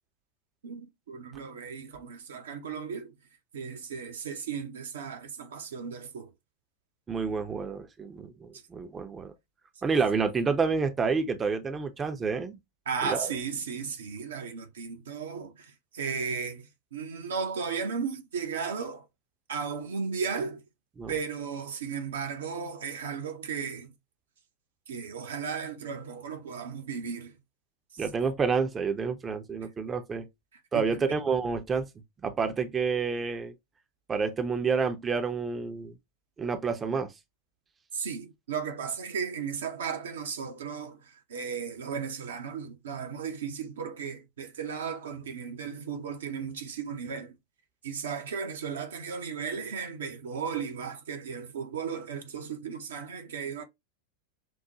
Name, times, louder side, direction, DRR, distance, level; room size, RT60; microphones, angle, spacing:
voice 1, 0.6-3.1 3.5-6.3 8.5-8.6 12.9-19.1 19.5-20.6 21.1-23.9 24.9-27.4 27.9-28.0 30.7-31.2 37.9-47.3 47.8-53.6, right 6 dB, 65° right, 0.7 m, -35 dB
voice 2, 7.1-9.3 9.8-12.6 13.0-13.3 21.0-21.1 28.0-30.3 30.7-31.9 32.2-33.5 34.1-36.0 36.4-37.1, right 5 dB, 20° right, 0.6 m, -29 dB
6.1 x 2.1 x 2.8 m
figure-of-eight pair, 90°, 0 cm